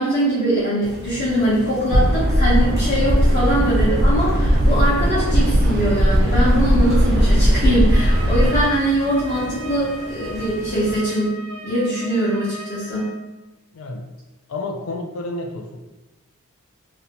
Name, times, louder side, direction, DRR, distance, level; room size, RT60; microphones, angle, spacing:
voice 1, 0.0-11.3 11.6-13.1, right 1 dB, 40° left, -11 dB, 0.8 m, -22 dB
sound 1, 0.8-11.0, equal, ahead, 0.7 m, -35 dB
sound 2, 1.9-8.6, equal, 50° right, 0.4 m, -17 dB
Trumpet, 7.9-13.2, equal, 80° right, 0.7 m, -37 dB
voice 2, 13.7-14.1 14.5-15.9, left 2 dB, 70° left, 2 dB, 0.4 m, -30 dB
2.6 x 2.2 x 2.8 m, 1.1 s
head